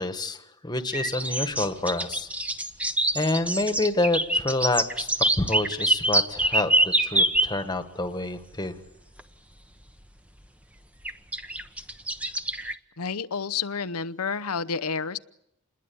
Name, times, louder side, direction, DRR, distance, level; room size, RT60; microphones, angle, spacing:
voice 1, 0.0-2.3 3.1-5.1 5.4-8.8, left 2 dB, 20° left, 9 dB, 1.6 m, -28 dB
sound 1, 0.9-7.5 9.2-9.3 11.0-12.7, right 1 dB, 5° right, 1.1 m, -25 dB
voice 2, 13.0-15.2, left 5 dB, 85° left, 15 dB, 0.9 m, -30 dB
28.5 x 21.0 x 8.7 m, 0.83 s
head